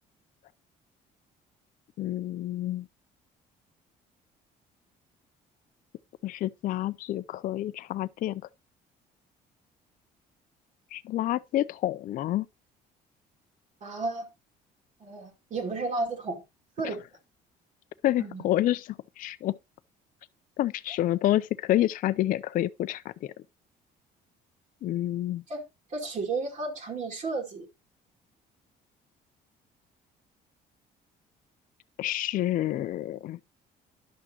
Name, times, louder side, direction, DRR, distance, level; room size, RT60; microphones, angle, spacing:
voice 1, 2.0-2.9 6.2-8.4 10.9-12.5 16.8-17.0 18.0-19.5 20.6-23.3 24.8-25.4 32.0-33.4, left 13 dB, 55° left, 0.4 m, -28 dB
voice 2, 13.8-14.3 15.0-16.4 16.8-17.0 18.2-18.4 25.5-25.6 25.9-27.7 32.8-32.9, right 3 dB, 45° right, 2.3 m, -33 dB
11.0 x 6.0 x 2.8 m
cardioid pair, 110°, 17 cm